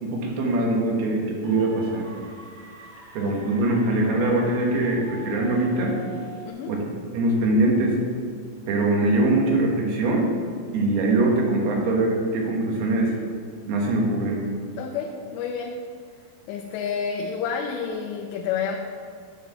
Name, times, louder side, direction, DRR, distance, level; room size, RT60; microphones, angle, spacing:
voice 1, 0.0-2.1 3.1-6.0 6.7-6.9 7.1-8.0 8.7-10.3 10.7-13.1 13.7-14.4, right 2 dB, 70° right, -1 dB, 3.2 m, -22 dB
sound 1, 1.4-6.5, right 2 dB, 25° right, 0.9 m, -44 dB
voice 2, 3.2-3.6 6.5-6.8 14.8-15.8 16.5-18.8, left 6 dB, 85° left, 2 dB, 2.9 m, -30 dB
8.8 x 7.5 x 5.8 m, 2.1 s
omnidirectional pair, 5.0 m